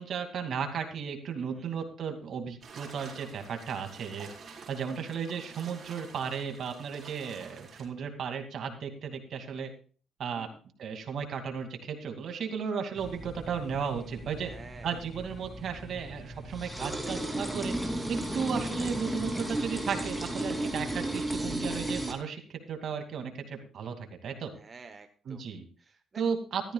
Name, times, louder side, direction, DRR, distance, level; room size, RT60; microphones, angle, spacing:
voice 1, 0.0-9.7 10.2-10.5 10.8-14.5 14.8-17.8 18.1-24.0 24.2-24.5 25.2-25.7 26.1-26.7, right 6 dB, 65° right, 5 dB, 2.4 m, -35 dB
sound 1, 2.6-7.9, right 5 dB, 50° right, 4.5 m, -49 dB
sound 2, 13.0-22.1, right 1 dB, 5° right, 2.9 m, -34 dB
voice 2, 14.4-15.0 24.6-25.4 25.8-26.2, right 4 dB, 35° right, 7 dB, 1.0 m, -50 dB
14.0 x 14.0 x 2.4 m, 0.41 s
cardioid pair, 90°, 0 cm